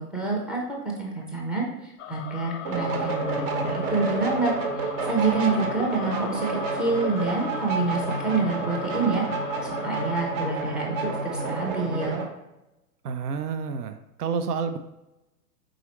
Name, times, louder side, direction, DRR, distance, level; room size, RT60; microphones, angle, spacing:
voice 1, 0.0-4.5 4.8-9.2 9.8-12.2, right 3 dB, ahead, -2 dB, 0.4 m, -27 dB
sound 1, 2.0-10.2, left 9 dB, 55° left, 0.5 m, -40 dB
sound 2, 2.6-12.3, right 3 dB, 50° right, 1.0 m, -29 dB
voice 2, 13.0-14.8, right 5 dB, 75° right, 9 dB, 0.6 m, -29 dB
4.8 x 3.8 x 3.0 m, 0.96 s
figure-of-eight pair, 110°, 47 cm